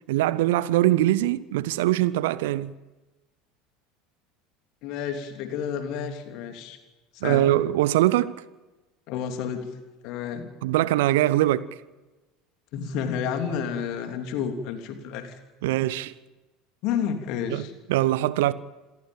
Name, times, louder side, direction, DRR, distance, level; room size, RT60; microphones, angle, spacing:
voice 1, 0.1-2.7 7.2-8.4 10.6-11.7 15.6-16.1 17.5-17.6 17.9-18.5, right 15 dB, 60° right, 0.8 m, -22 dB
voice 2, 4.8-6.8 7.1-7.5 9.1-9.7 10.0-10.5 11.4-11.5 12.7-15.4 16.8-17.7, left 7 dB, 50° left, 3.0 m, -30 dB
27.0 x 15.5 x 9.1 m
figure-of-eight pair, 70°, 0 cm